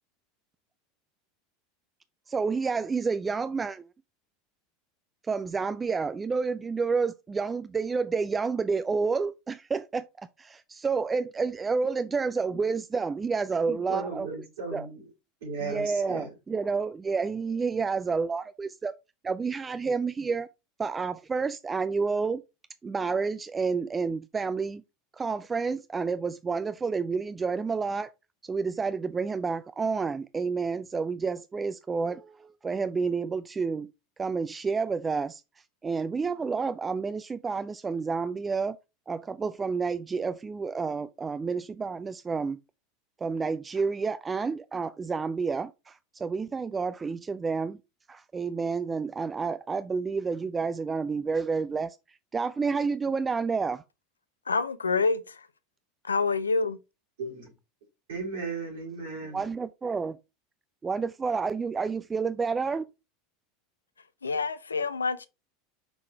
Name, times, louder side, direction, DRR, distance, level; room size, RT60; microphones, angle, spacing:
voice 1, 2.3-3.8 5.3-14.3 14.7-14.9 15.6-18.9 19.2-20.5 20.8-22.4 22.8-24.8 25.1-28.1 28.4-33.9 34.2-35.4 35.8-38.8 39.1-42.6 43.2-47.8 48.1-52.0 52.3-53.8 59.3-60.2 60.8-62.9, right 4 dB, 20° right, 0.3 m, -29 dB
voice 2, 13.6-15.1 15.4-16.3 57.2-57.5 58.1-59.4, right 4 dB, 65° right, 3.5 m, -36 dB
voice 3, 54.5-55.5 56.0-56.8 64.2-65.3, left 4 dB, 80° left, 0.5 m, -27 dB
6.0 x 3.8 x 4.5 m
figure-of-eight pair, 80°, 0 cm